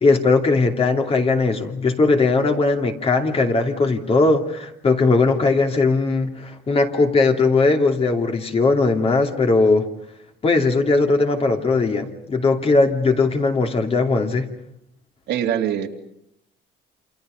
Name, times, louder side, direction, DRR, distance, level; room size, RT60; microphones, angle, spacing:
voice 1, 0.0-9.8 10.4-14.5, left 3 dB, 30° left, 4 dB, 2.9 m, -19 dB
voice 2, 15.3-15.9, right 10 dB, 75° right, 3 dB, 2.8 m, -22 dB
29.0 x 27.5 x 5.2 m, 0.74 s
cardioid pair, 125°, 18 cm